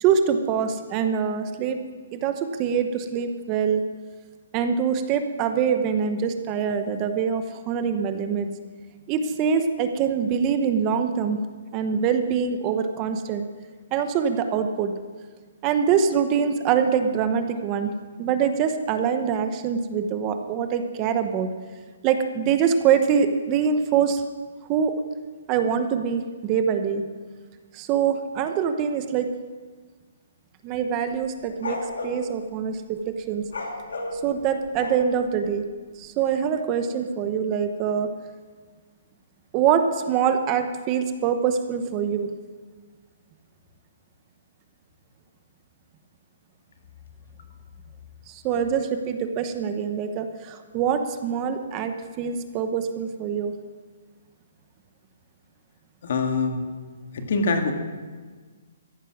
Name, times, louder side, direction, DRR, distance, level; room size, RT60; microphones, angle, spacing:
voice 1, 0.0-1.8 2.1-3.9 4.5-8.5 9.1-11.4 11.7-13.4 13.9-14.9 15.6-17.9 18.2-21.5 22.0-24.2 24.7-24.9 25.5-27.0 27.7-29.3 30.6-33.5 34.1-35.6 36.0-38.1 39.5-42.3 48.3-53.5, right 7 dB, 25° right, 8 dB, 0.8 m, -24 dB
sound 1, 31.1-32.2 33.4-35.3, left 2 dB, 90° left, 2.7 m, -32 dB
voice 2, 56.0-56.6 57.1-57.7, left 3 dB, 55° left, 5 dB, 1.9 m, -24 dB
14.5 x 10.0 x 6.0 m, 1.4 s
hypercardioid pair, 160°, 0 cm